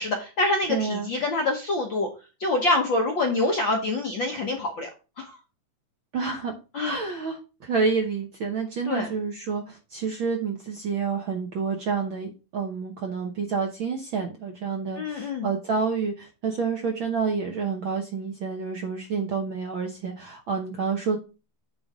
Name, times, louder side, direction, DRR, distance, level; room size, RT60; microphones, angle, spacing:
voice 1, 0.0-2.1 2.4-4.9 5.2-5.4 6.7-7.0 8.9-9.1 15.0-15.5, left 2 dB, 60° left, 2 dB, 1.3 m, -26 dB
voice 2, 0.7-1.1 6.1-21.2, right 5 dB, 60° right, 3 dB, 1.3 m, -29 dB
8.7 x 3.9 x 4.8 m, 0.31 s
omnidirectional pair, 3.5 m